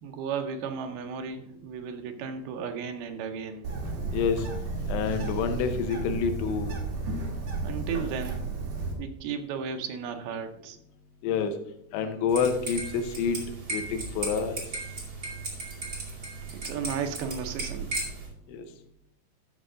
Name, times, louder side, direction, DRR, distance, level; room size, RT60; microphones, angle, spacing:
voice 1, 0.0-3.7 7.6-8.5 9.0-10.8 16.5-17.9, right 6 dB, 75° right, 6 dB, 2.5 m, -34 dB
Bird, 3.6-8.9, right 3 dB, 55° right, 2.9 m, -33 dB
voice 2, 4.1-4.4 4.9-6.7 11.2-11.5 11.9-13.4 13.7-14.6 18.5-18.6, left 6 dB, 80° left, 6 dB, 2.9 m, -28 dB
sound 1, 12.3-18.3, right 3 dB, 35° right, 1.7 m, -36 dB
12.5 x 6.1 x 3.8 m, 0.78 s
omnidirectional pair, 5.0 m